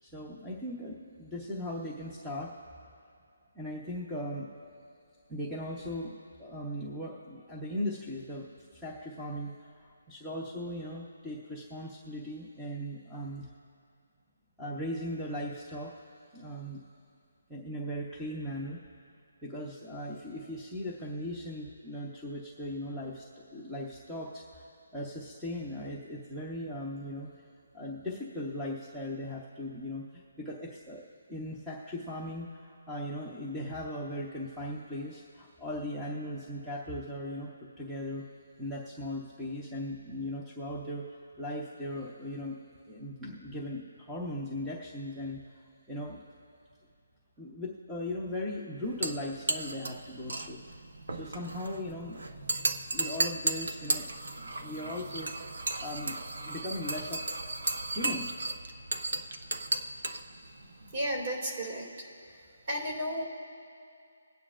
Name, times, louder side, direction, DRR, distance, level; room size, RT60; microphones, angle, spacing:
voice 1, 0.0-2.5 3.5-4.5 5.3-8.5 8.7-13.5 14.6-16.0 16.3-16.8 17.5-18.8 19.4-23.3 23.5-27.5 27.7-31.0 31.3-37.5 37.8-38.3 38.6-42.6 42.9-46.2 47.4-50.6 51.1-52.4 52.9-54.2 54.6-55.5 55.8-57.3 57.9-58.3, left 1 dB, 5° right, -5 dB, 0.7 m, -38 dB
sound 1, 48.8-61.2, right 2 dB, 70° right, 1.0 m, -35 dB
voice 2, 60.9-61.9 62.7-63.2, equal, 35° right, 1 dB, 2.5 m, -32 dB
22.0 x 9.4 x 2.5 m, 2.4 s
hypercardioid pair, 175°, 0 cm